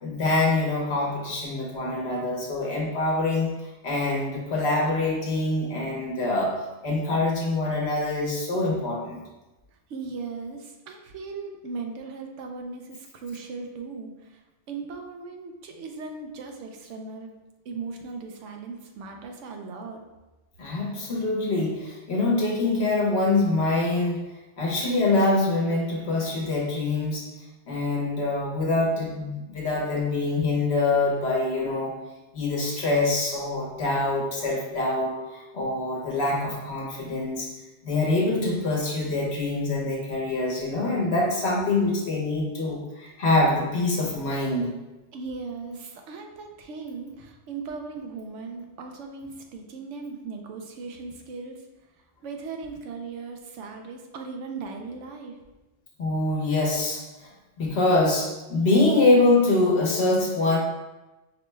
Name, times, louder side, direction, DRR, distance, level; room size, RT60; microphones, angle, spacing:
voice 1, 0.0-3.5 3.8-6.5 6.8-9.2 20.6-24.2 24.6-27.3 27.7-31.9 32.3-37.5 37.8-44.7 56.0-57.3 57.6-60.6, left 2 dB, 65° left, -3 dB, 1.2 m, -24 dB
voice 2, 9.9-17.3 17.6-20.0 45.1-51.6 52.2-55.4, right 4 dB, 80° right, 3 dB, 0.9 m, -38 dB
5.1 x 2.2 x 3.2 m, 1.1 s
omnidirectional pair, 1.2 m